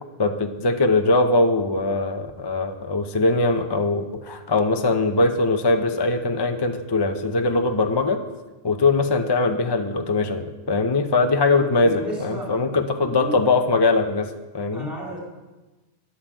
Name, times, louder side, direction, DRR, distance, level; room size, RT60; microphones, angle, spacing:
voice 1, 0.2-8.2 8.6-14.9, left 3 dB, 25° left, 6 dB, 0.6 m, -21 dB
voice 2, 11.5-12.5 13.0-13.4 14.7-15.2, right 1 dB, ahead, -3 dB, 4.1 m, -32 dB
10.5 x 8.7 x 7.6 m, 1.2 s
omnidirectional pair, 1.2 m